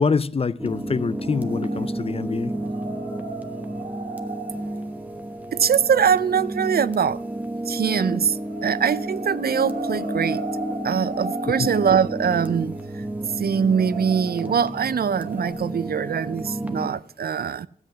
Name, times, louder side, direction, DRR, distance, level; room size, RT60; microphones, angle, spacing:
voice 1, 0.0-2.6 11.6-11.7, left 5 dB, 40° left, 0.4 m, -25 dB
sound 1, 0.6-16.9, right 1 dB, 10° right, 1.0 m, -31 dB
sound 2, 1.2-2.1 2.4-5.6 8.3-15.5, right 3 dB, 55° right, 2.0 m, -36 dB
voice 2, 5.5-7.2 7.7-10.5 10.8-13.0 13.4-17.7, right 7 dB, 75° right, 0.4 m, -23 dB
13.0 x 8.1 x 5.6 m
wide cardioid pair, 95°, 16 cm